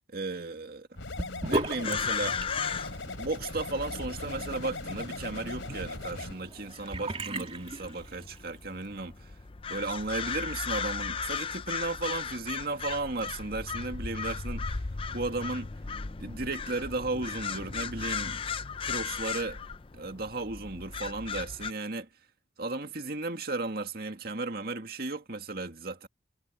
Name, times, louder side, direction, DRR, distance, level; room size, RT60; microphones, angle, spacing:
voice 1, 0.1-1.0 1.5-2.4 3.2-9.3 9.7-14.8 15.1-15.7 16.2-18.4 18.8-19.6 19.9-22.1 22.6-26.1, right 3 dB, 50° right, 2.2 m, -35 dB
sound 1, 1.0-6.3, left 3 dB, 90° left, 3.5 m, -39 dB
Sink (filling or washing) / Bathtub (filling or washing), 1.2-8.5, right 1 dB, 30° right, 3.0 m, -38 dB
sound 2, 1.8-21.7, left 6 dB, 30° left, 0.5 m, -37 dB
head